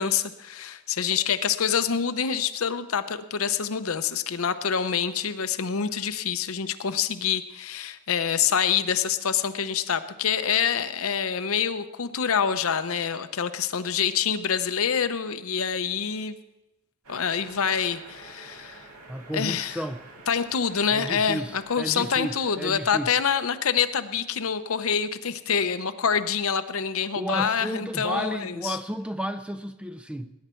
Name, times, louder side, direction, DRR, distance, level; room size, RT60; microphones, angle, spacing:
voice 1, 0.0-16.4 17.1-18.8 19.3-19.8 20.3-28.8, left 7 dB, 70° left, 11 dB, 0.8 m, -26 dB
sound 1, 17.0-22.6, right 2 dB, 80° right, 2.1 m, -48 dB
voice 2, 19.1-20.0 20.9-23.1 27.2-30.3, equal, 5° right, 10 dB, 0.5 m, -32 dB
19.5 x 10.5 x 4.5 m, 0.98 s
head